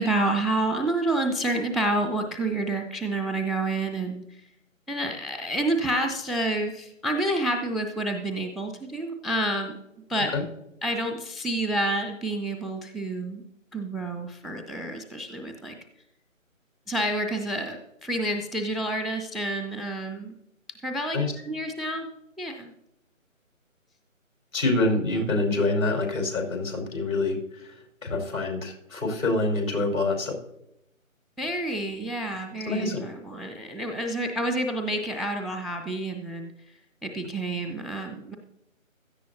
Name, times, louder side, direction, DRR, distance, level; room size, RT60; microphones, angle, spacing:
voice 1, 0.0-4.4 4.9-9.7 10.1-10.3 10.8-13.4 13.7-15.8 16.9-20.3 20.8-22.1 22.4-22.7 31.4-36.5 37.0-38.4, right 1 dB, ahead, 4 dB, 0.4 m, -29 dB
voice 2, 24.5-27.8 28.0-30.4 32.6-33.0, left 2 dB, 70° left, 1 dB, 5.2 m, -26 dB
16.0 x 13.5 x 2.8 m, 0.83 s
figure-of-eight pair, 155°, 41 cm